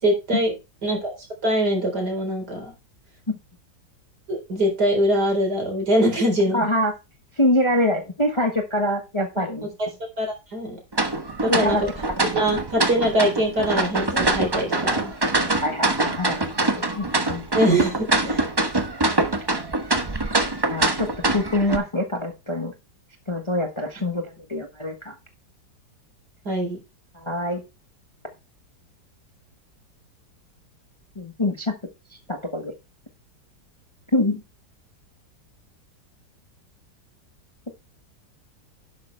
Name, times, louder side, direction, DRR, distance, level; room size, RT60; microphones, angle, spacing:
voice 1, 0.0-0.5 0.8-1.1 1.4-2.7 4.3-6.7 10.2-10.8 11.4-11.9 12.3-15.2 17.5-18.5 26.4-26.8, equal, 65° right, 3 dB, 4.6 m, -23 dB
voice 2, 6.5-6.9 7.4-9.7 11.5-11.8 15.4-17.5 20.6-21.1 21.3-22.7 23.3-25.1 27.1-27.6 31.2-31.7 32.3-32.7 34.1-34.4, left 1 dB, 20° left, 5 dB, 1.1 m, -25 dB
sound 1, 10.9-21.8, right 2 dB, 20° right, 0.8 m, -24 dB
11.0 x 8.3 x 3.3 m, 0.26 s
omnidirectional pair, 1.9 m